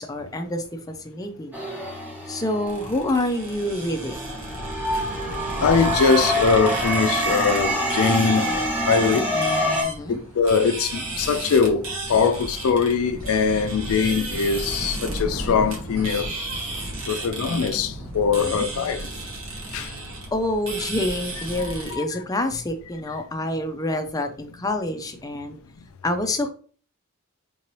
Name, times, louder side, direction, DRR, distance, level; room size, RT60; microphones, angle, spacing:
voice 1, 0.0-1.5 2.3-4.2 9.8-10.2 18.3-18.7 20.3-25.6 26.0-26.5, left 1 dB, 15° left, 0.5 m, -27 dB
sound 1, 1.5-3.4 4.0-9.8, equal, 10° right, 1.0 m, -26 dB
sound 2, 2.7-21.9, right 2 dB, 70° right, 1.1 m, -33 dB
voice 2, 5.6-9.3 10.1-16.3 17.1-19.1 19.7-19.9 21.9-22.0 25.8-25.9, left 5 dB, 85° left, 0.4 m, -22 dB
3.8 x 2.9 x 3.0 m
head